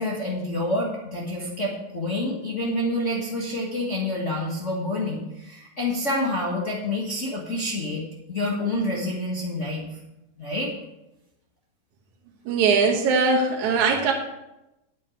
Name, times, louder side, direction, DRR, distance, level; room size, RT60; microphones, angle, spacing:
voice 1, 0.0-8.0 8.3-9.9 10.4-10.7, left 1 dB, 35° left, -4 dB, 1.4 m, -28 dB
voice 2, 12.5-14.1, right 4 dB, 80° right, 1 dB, 2.5 m, -20 dB
9.9 x 9.0 x 5.0 m, 0.94 s
omnidirectional pair, 3.3 m